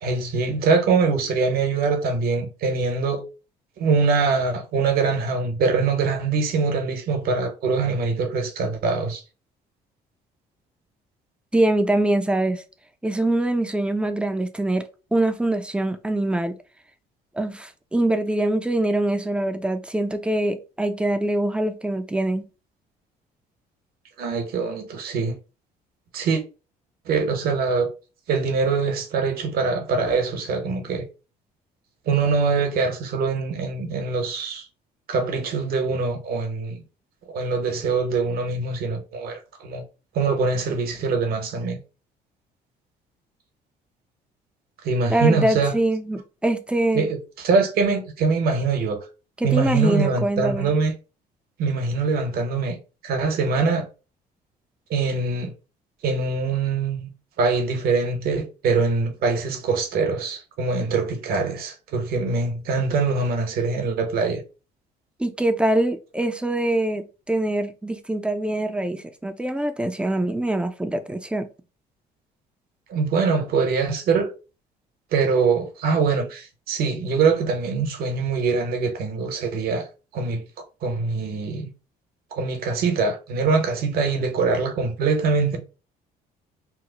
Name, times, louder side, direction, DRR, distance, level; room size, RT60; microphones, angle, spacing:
voice 1, 0.0-3.2 3.8-9.2 24.2-25.4 26.1-26.4 27.1-27.9 28.3-31.0 32.1-34.7 35.1-36.8 37.3-39.8 40.1-41.8 44.8-45.7 46.9-49.1 49.4-50.9 51.6-52.8 53.0-53.9 54.9-55.5 56.0-57.1 57.4-64.4 72.9-74.3 75.1-79.9 80.1-80.4 80.8-81.7 82.3-85.6, right 4 dB, 65° right, 0.9 m, -23 dB
voice 2, 11.5-12.6 13.0-14.8 15.1-16.6 17.4-22.5 45.1-47.1 49.4-50.7 65.2-71.5, right 1 dB, 5° right, 0.4 m, -24 dB
2.9 x 2.0 x 3.8 m
cardioid pair, 110°, 17 cm